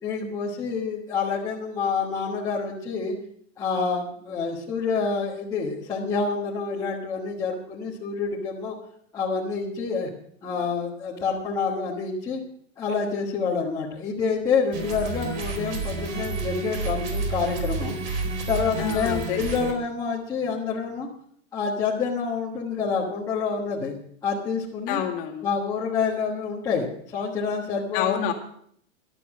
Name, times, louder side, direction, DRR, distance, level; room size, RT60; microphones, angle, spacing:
voice 1, 0.0-3.1 3.6-8.7 9.1-10.1 10.4-12.4 12.8-18.2 18.5-21.1 21.5-24.0 24.2-25.0 25.4-28.2, left 5 dB, 10° left, -6 dB, 1.3 m, -27 dB
sound 1, 14.7-19.7, right 3 dB, 60° right, 4.3 m, -30 dB
voice 2, 18.8-19.4 24.9-25.5 27.9-28.3, left 9 dB, 30° left, 1 dB, 2.0 m, -27 dB
15.5 x 12.0 x 4.8 m, 0.64 s
supercardioid pair, 175°, 39 cm